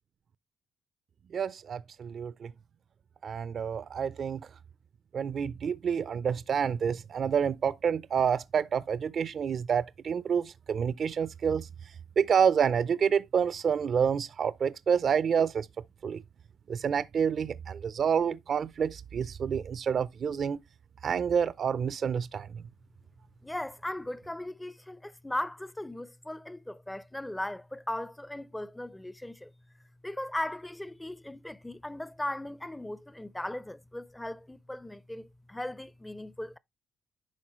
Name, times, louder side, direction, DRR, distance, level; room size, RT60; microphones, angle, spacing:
voice 1, 1.3-2.5 3.2-4.5 5.1-15.7 16.0-16.2 16.7-20.6 21.0-22.6, right 7 dB, 55° right, 0.4 m, -28 dB
voice 2, 23.4-29.5 30.0-36.6, left 1 dB, 10° left, 0.4 m, -38 dB
10.5 x 3.9 x 3.0 m
cardioid pair, 90°, 0 cm